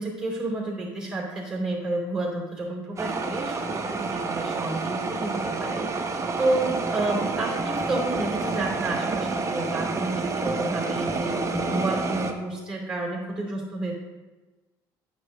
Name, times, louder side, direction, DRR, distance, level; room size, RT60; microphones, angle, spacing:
voice 1, 0.0-6.0 6.4-14.0, right 2 dB, 10° right, -2 dB, 2.5 m, -30 dB
sound 1, 3.0-12.3, right 3 dB, 30° right, 0.9 m, -29 dB
8.9 x 6.7 x 2.6 m, 1.2 s
supercardioid pair, 75°, 10 cm